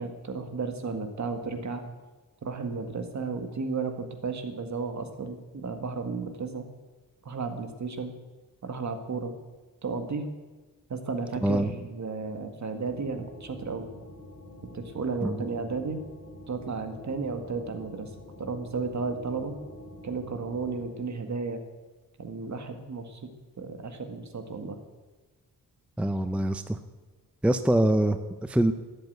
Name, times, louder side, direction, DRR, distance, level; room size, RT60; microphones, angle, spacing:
voice 1, 0.0-1.8 2.4-6.7 7.2-8.1 8.6-9.3 9.8-10.3 10.9-13.9 14.7-16.0 16.5-18.1 18.4-19.5 20.0-21.6 22.2-23.2 23.6-24.8, right 4 dB, 55° right, 6 dB, 1.7 m, -33 dB
sound 1, 12.8-20.9, left 1 dB, 45° left, 2.6 m, -47 dB
voice 2, 26.0-26.8 27.4-28.7, right 1 dB, 5° right, 9 dB, 0.6 m, -24 dB
12.0 x 8.2 x 9.3 m, 1.3 s
wide cardioid pair, 115°, 35 cm